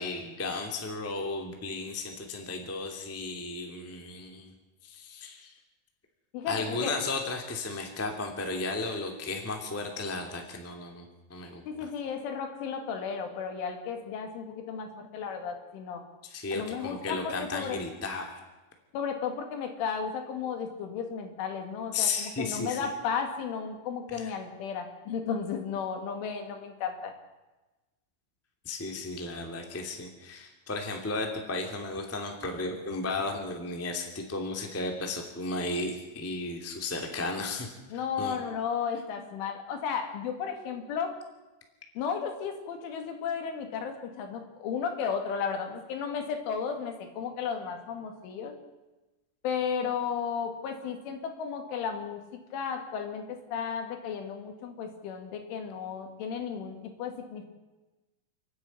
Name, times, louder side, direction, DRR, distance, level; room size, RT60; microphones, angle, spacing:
voice 1, 0.0-4.5 4.8-5.5 6.4-11.9 16.2-18.4 21.9-22.8 24.1-24.3 28.6-37.7 38.2-38.3, left 3 dB, 5° left, 3 dB, 1.1 m, -34 dB
voice 2, 6.3-7.0 11.6-16.0 16.5-17.8 18.9-27.1 37.9-41.1 42.0-48.5 49.4-57.5, left 6 dB, 80° left, 5 dB, 4.8 m, -34 dB
29.0 x 9.9 x 10.0 m, 1.1 s
omnidirectional pair, 5.5 m